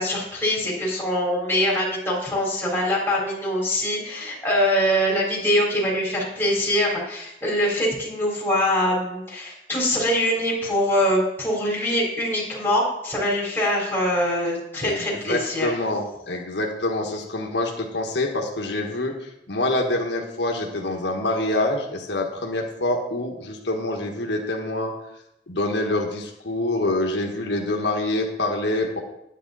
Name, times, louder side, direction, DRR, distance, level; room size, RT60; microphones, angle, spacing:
voice 1, 0.0-15.7, equal, 10° left, -5 dB, 3.6 m, -23 dB
voice 2, 14.8-24.9 25.5-29.0, left 2 dB, 90° left, 1 dB, 1.5 m, -26 dB
10.0 x 9.3 x 4.1 m, 0.84 s
head